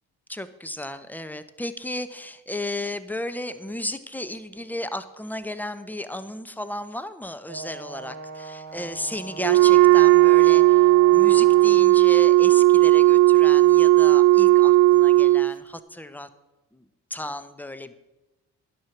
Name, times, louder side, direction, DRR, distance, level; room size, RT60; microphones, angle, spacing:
voice 1, 0.3-16.3 16.7-16.8 17.1-17.9, left 1 dB, 5° left, 12 dB, 0.9 m, -34 dB
Brass instrument, 7.5-11.9, right 4 dB, 35° right, 1.7 m, -39 dB
Wind instrument woodwind instrument, 9.4-15.5, right 17 dB, 75° right, 0.6 m, -15 dB
10.0 x 6.2 x 7.1 m, 1.0 s
hypercardioid pair, 40°, 46 cm